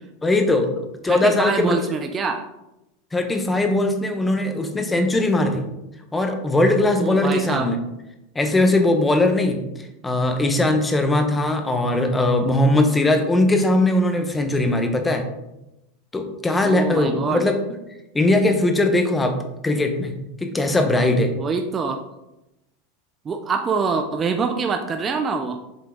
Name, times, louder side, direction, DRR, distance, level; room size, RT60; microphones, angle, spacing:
voice 1, 0.2-0.7 1.0-1.8 3.1-5.6 6.1-7.8 8.3-9.6 10.0-15.3 16.1-17.6 18.1-19.4 19.6-20.1 20.4-21.3, left 2 dB, 10° left, 6 dB, 0.8 m, -20 dB
voice 2, 1.0-2.4 7.0-7.7 16.6-17.4 21.4-22.0 23.3-25.6, right 5 dB, 20° right, 5 dB, 0.5 m, -25 dB
7.4 x 3.8 x 3.6 m, 0.91 s
supercardioid pair, 140°, 0 cm